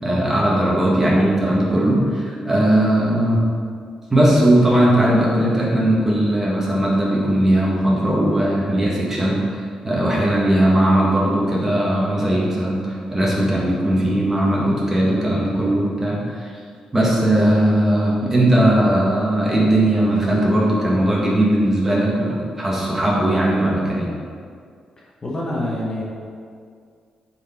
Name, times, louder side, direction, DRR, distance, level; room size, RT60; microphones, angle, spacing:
voice 1, 0.0-3.4 4.1-16.5 16.9-24.1, right 1 dB, 20° right, -5 dB, 1.9 m, -18 dB
voice 2, 25.2-26.0, left 1 dB, 30° left, -4 dB, 1.5 m, -25 dB
9.1 x 4.5 x 4.5 m, 2.2 s
cardioid pair, 105°, 2 cm